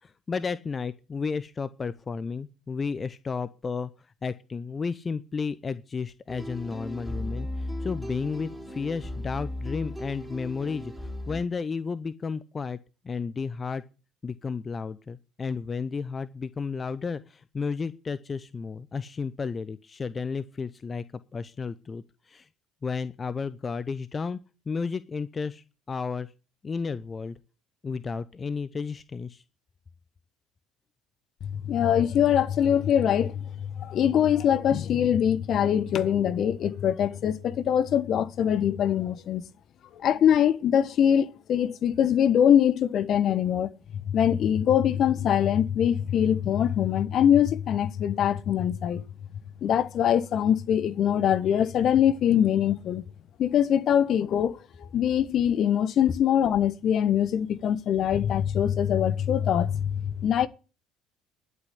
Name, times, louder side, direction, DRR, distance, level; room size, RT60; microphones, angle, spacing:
voice 1, 0.0-10.9 11.3-12.8 13.0-13.8 14.2-21.0 21.3-22.5 22.8-24.4 24.7-26.3 26.6-27.4 27.8-29.4, left 5 dB, 30° left, 0.8 m, -32 dB
sound 1, 6.3-11.4, left 1 dB, ahead, 4.9 m, -36 dB
voice 2, 31.4-39.4 40.0-43.7 44.1-49.0 49.6-53.0 53.4-54.6 54.9-60.5, left 9 dB, 50° left, 1.1 m, -23 dB
11.0 x 8.7 x 9.9 m
figure-of-eight pair, 60°, 0 cm